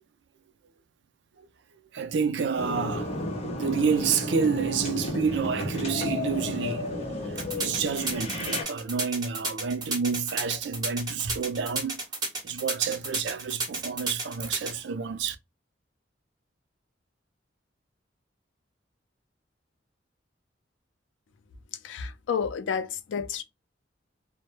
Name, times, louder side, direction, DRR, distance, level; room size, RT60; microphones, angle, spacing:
voice 1, 1.9-3.2 3.6-6.9 7.2-12.0 12.4-15.4, right 6 dB, 65° right, 0.4 m, -29 dB
sound 1, 2.6-8.6, left 1 dB, 35° left, 0.6 m, -32 dB
sound 2, 7.4-14.7, right 2 dB, 20° right, 1.1 m, -32 dB
voice 2, 21.8-23.4, left 6 dB, 75° left, 0.4 m, -30 dB
2.1 x 2.1 x 2.9 m
head